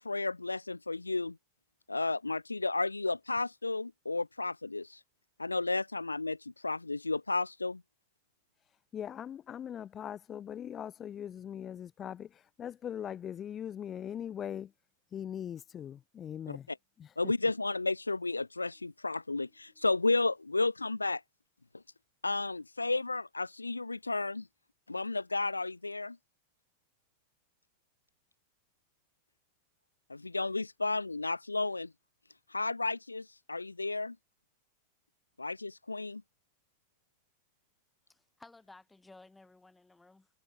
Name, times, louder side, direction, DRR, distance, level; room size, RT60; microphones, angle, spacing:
voice 1, 0.0-1.4 1.9-5.0 5.4-7.8 16.5-16.6 17.2-21.2 22.2-24.5 24.9-26.2 30.1-31.9 32.5-34.2 35.4-36.2, left 3 dB, 80° left, 0.4 m, -32 dB
voice 2, 8.9-14.7 15.1-16.7 17.0-17.3, left 9 dB, 25° left, 1.6 m, -41 dB
voice 3, 38.1-40.3, left 2 dB, 10° left, 3.8 m, -56 dB
figure-of-eight pair, 90°, 0 cm